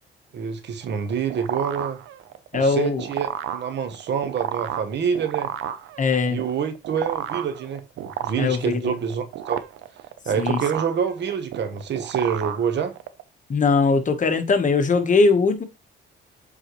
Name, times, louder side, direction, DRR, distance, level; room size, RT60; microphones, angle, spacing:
voice 1, 0.3-2.0 2.6-3.3 3.5-5.5 6.3-9.6 10.2-12.9, right 7 dB, 60° right, 1.1 m, -26 dB
sound 1, 0.8-13.2, right 11 dB, 85° right, 0.7 m, -32 dB
voice 2, 2.5-3.0 6.0-6.4 8.4-8.9 10.4-10.6 13.5-15.6, left 4 dB, 40° left, 1.2 m, -20 dB
8.0 x 4.1 x 3.1 m
cardioid pair, 90°, 20 cm